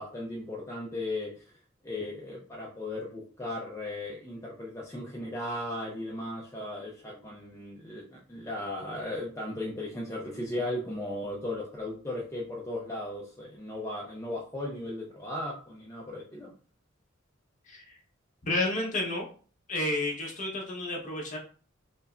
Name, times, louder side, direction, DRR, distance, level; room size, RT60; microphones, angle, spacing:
voice 1, 0.0-1.5 1.8-16.5, left 1 dB, 15° left, -4 dB, 0.5 m, -36 dB
voice 2, 17.6-18.0 18.5-19.3 19.7-21.4, left 2 dB, 40° left, -1 dB, 1.0 m, -31 dB
5.0 x 2.1 x 2.5 m, 0.39 s
head